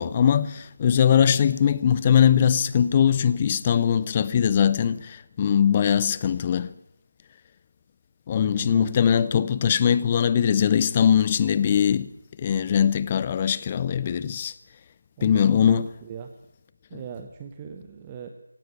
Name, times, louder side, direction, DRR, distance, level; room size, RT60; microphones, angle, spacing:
voice 1, 0.0-6.7 8.3-12.1 12.4-14.5 15.2-15.9 16.9-17.0, left 8 dB, 20° left, 0.7 m, -21 dB
voice 2, 8.4-9.0 15.2-16.3 16.9-18.3, right 7 dB, 15° right, 1.0 m, -39 dB
17.5 x 17.0 x 8.9 m
figure-of-eight pair, 165°, 0 cm